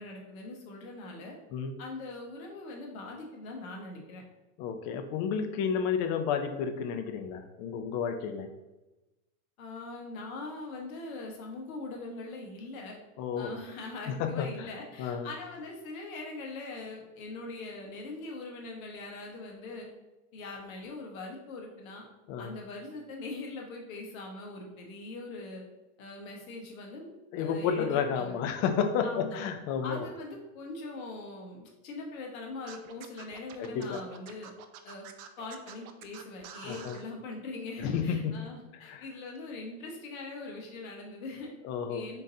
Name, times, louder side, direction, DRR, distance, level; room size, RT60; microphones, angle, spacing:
voice 1, 0.0-1.4 1.8-4.2 9.6-13.0 13.4-19.9 20.3-22.0 22.4-25.6 26.0-27.1 27.3-28.3 29.0-29.4 29.8-34.5 34.8-35.0 35.4-41.5 41.9-42.2, left 3 dB, 75° left, 0 dB, 1.2 m, -42 dB
voice 2, 4.6-8.5 13.2-13.6 14.1-14.7 15.0-15.3 22.3-22.6 27.3-30.0 33.6-34.0 36.6-37.0 37.8-38.4 38.7-39.0 41.6-42.1, left 7 dB, 40° left, 7 dB, 0.5 m, -31 dB
Scratching (performance technique), 32.7-37.0, right 9 dB, 80° right, 0.6 m, -47 dB
3.9 x 3.8 x 2.7 m, 1.0 s
supercardioid pair, 125°, 42 cm